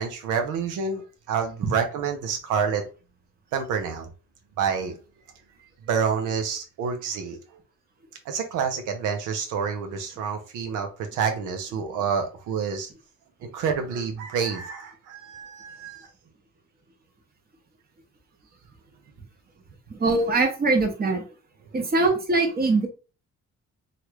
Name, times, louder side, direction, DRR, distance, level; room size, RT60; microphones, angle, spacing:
voice 1, 0.0-2.8 3.5-4.1 4.6-5.0 5.9-7.4 8.2-12.9 13.4-16.1, right 6 dB, 90° right, 5 dB, 0.6 m, -28 dB
voice 2, 19.9-21.2 21.7-22.9, right 3 dB, 30° right, 3 dB, 1.0 m, -22 dB
3.0 x 2.4 x 2.9 m, 0.34 s
cardioid pair, 90°, 30 cm